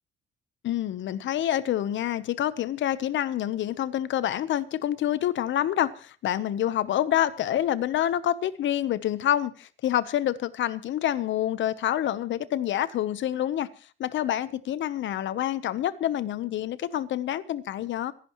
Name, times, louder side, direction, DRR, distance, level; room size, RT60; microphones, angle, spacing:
voice 1, 0.6-13.7 14.0-18.1, left 11 dB, 70° left, 1.0 m, -27 dB
26.5 x 11.0 x 3.1 m
cardioid pair, 90°, 20 cm